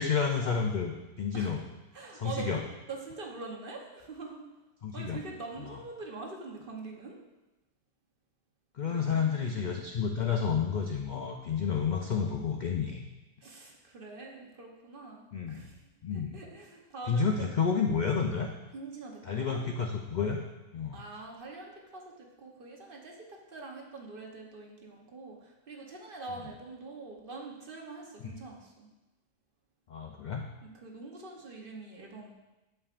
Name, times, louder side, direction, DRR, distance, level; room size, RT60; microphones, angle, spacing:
voice 1, 0.0-1.6 2.1-2.6 4.8-5.2 8.8-13.0 15.3-15.6 16.0-16.4 17.1-18.5 19.2-20.4 20.7-21.0 28.2-28.3 29.9-30.4, left 6 dB, 65° left, 2 dB, 0.4 m, -30 dB
voice 2, 1.9-4.4 4.9-7.2 8.9-9.4 13.4-15.8 16.1-17.5 18.7-19.6 20.9-28.9 30.6-32.3, right 3 dB, 45° right, 0 dB, 1.0 m, -44 dB
8.6 x 7.0 x 2.5 m, 1.0 s
omnidirectional pair, 1.4 m